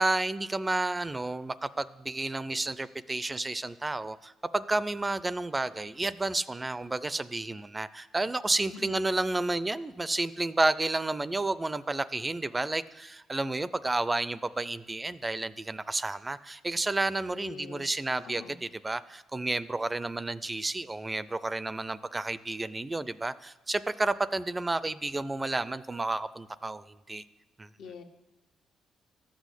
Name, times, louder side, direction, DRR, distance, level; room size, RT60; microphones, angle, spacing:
voice 1, 0.0-27.2 27.6-27.7, right 2 dB, 20° right, 16 dB, 0.5 m, -31 dB
voice 2, 8.7-9.1 17.2-17.9 18.2-18.5 27.8-28.0, left 4 dB, 80° left, 4 dB, 1.5 m, -44 dB
13.0 x 6.3 x 8.2 m, 1.0 s
cardioid pair, 90°, 0 cm